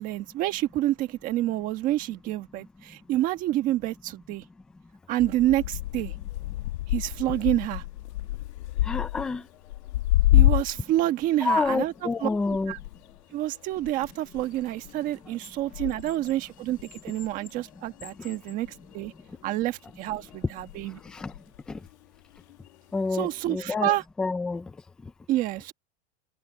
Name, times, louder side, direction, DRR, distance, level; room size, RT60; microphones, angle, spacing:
voice 1, 0.0-4.4 5.1-6.1 6.9-7.8 10.3-11.9 12.2-12.3 12.7-12.8 13.3-18.7 18.9-19.1 19.4-21.0 23.1-24.0 25.3-25.7, right 14 dB, 25° right, 1.3 m, -28 dB
sound 1, 5.2-11.0 11.3-18.4 18.6-19.4 20.1-21.9 22.4-22.8 23.5-23.6, left 16 dB, 80° left, 1.7 m, -28 dB
voice 2, 8.9-9.4 11.4-12.7 21.2-21.3 21.7-21.8 22.9-24.6, left 4 dB, ahead, 0.4 m, -28 dB
sound 2, 14.4-15.5 15.9-18.7 19.4-19.5, left 10 dB, 25° left, 6.4 m, -51 dB
supercardioid pair, 180°, 33 cm